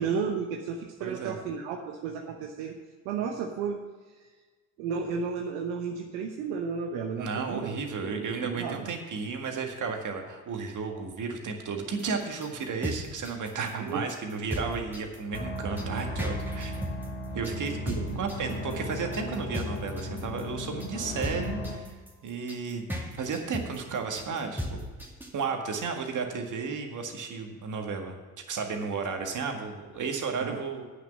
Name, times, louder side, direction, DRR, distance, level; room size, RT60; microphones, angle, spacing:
voice 1, 0.0-2.8 3.0-3.8 4.2-4.3 4.8-7.7 8.0-8.9 13.8-14.0 17.9-18.2 30.4-30.6, right 6 dB, 75° right, 3 dB, 0.9 m, -33 dB
voice 2, 1.0-1.4 7.2-16.7 17.3-17.8 18.2-21.9 22.2-22.9 23.2-24.8 25.3-28.2 28.5-30.8, right 5 dB, 45° right, 4 dB, 1.8 m, -33 dB
sound 1, 12.0-25.4, equal, 5° right, 2.1 m, -37 dB
sound 2, 15.3-21.8, left 1 dB, 25° left, 2.0 m, -36 dB
8.7 x 6.7 x 8.2 m, 1.4 s
hypercardioid pair, 60°, 41 cm